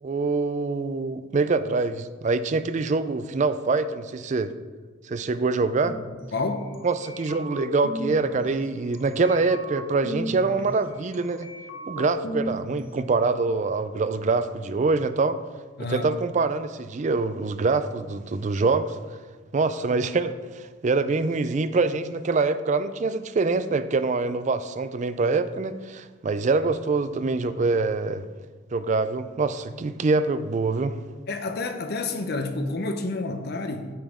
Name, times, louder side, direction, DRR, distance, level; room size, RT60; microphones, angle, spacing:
voice 1, 0.0-4.5 5.1-6.0 6.8-11.5 11.9-15.4 15.9-19.0 19.5-28.2 28.7-31.0, right 3 dB, 35° right, 12 dB, 0.4 m, -25 dB
sound 1, 5.8-6.2 6.7-8.4 8.9-10.6 11.1-12.8, left 1 dB, 75° left, 1.0 m, -35 dB
voice 2, 6.3-6.7 15.8-16.1 31.3-33.9, left 3 dB, 50° left, 7 dB, 0.7 m, -29 dB
8.8 x 7.2 x 3.6 m, 1.4 s
head